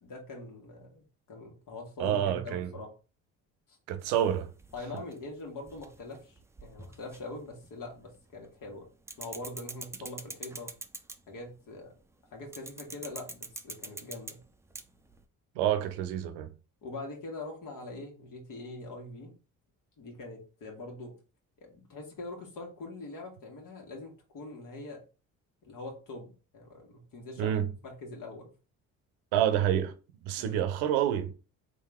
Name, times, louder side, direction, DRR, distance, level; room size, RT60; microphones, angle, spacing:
voice 1, 0.0-2.9 3.7-3.8 4.7-8.9 9.2-10.7 11.3-11.9 12.3-14.4 16.8-19.3 20.0-21.1 21.6-25.0 25.6-28.5 30.4-30.6, left 2 dB, 55° left, 1.6 m, -43 dB
voice 2, 2.0-2.7 3.9-4.5 15.6-16.5 27.4-27.7 29.3-29.9 30.2-31.3, right 10 dB, 80° right, 0.7 m, -28 dB
sound 1, 4.0-8.2 8.4-11.4 12.5-15.2, right 2 dB, 5° right, 0.4 m, -45 dB
3.6 x 2.7 x 3.5 m
hypercardioid pair, 60°, 39 cm